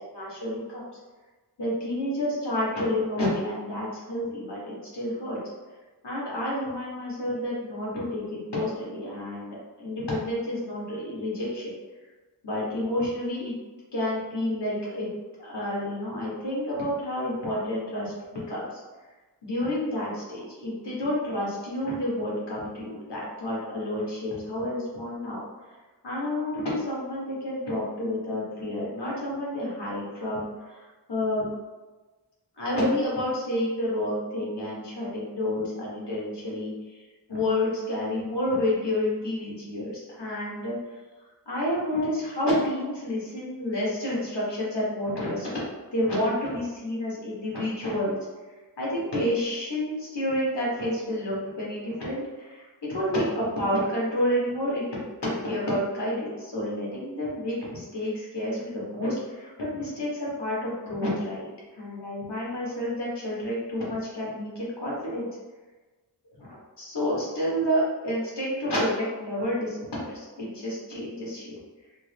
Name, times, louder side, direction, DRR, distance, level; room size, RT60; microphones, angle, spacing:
voice 1, 0.1-0.8 1.6-5.4 6.0-11.7 12.4-13.5 13.9-15.1 15.4-18.7 19.4-25.4 26.0-30.5 30.7-31.5 32.6-37.0 37.3-40.8 41.5-45.6 45.9-48.2 48.8-61.5 61.7-65.3 66.4-71.5, left 1 dB, 70° left, -6 dB, 1.4 m, -29 dB
3.5 x 2.0 x 3.3 m, 1.2 s
wide cardioid pair, 90°, 43 cm